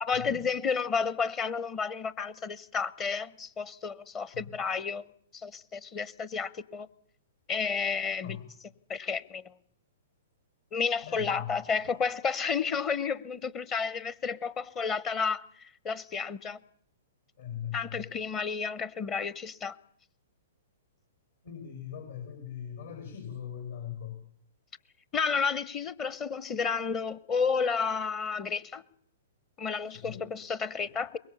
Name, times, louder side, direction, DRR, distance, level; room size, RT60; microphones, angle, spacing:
voice 1, 0.0-5.0 5.3-6.9 7.5-8.4 8.9-9.4 10.7-16.6 17.7-19.8 25.1-28.8 29.6-31.2, left 5 dB, 25° left, 0.8 m, -31 dB
voice 2, 11.0-11.5 11.8-11.9 17.4-18.0 21.4-24.2 29.9-30.3 30.8-30.9, left 9 dB, 65° left, 5.8 m, -40 dB
23.0 x 21.5 x 7.0 m
figure-of-eight pair, 110°, 0 cm